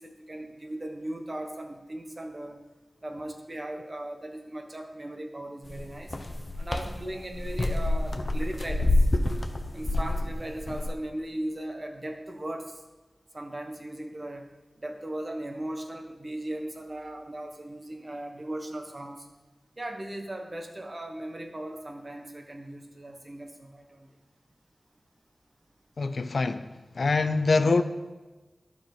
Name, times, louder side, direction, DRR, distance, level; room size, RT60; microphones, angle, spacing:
voice 1, 0.0-2.6 3.0-6.2 6.6-9.1 9.7-12.8 13.3-14.5 14.8-19.3 19.8-24.1, right 1 dB, 35° right, 3 dB, 1.2 m, -38 dB
sound 1, 5.6-10.9, left 1 dB, 40° left, 0.8 m, -27 dB
voice 2, 26.0-26.7 27.0-27.8, left 3 dB, 75° left, 10 dB, 0.5 m, -24 dB
12.0 x 5.7 x 4.5 m, 1.2 s
wide cardioid pair, 85°, 0 cm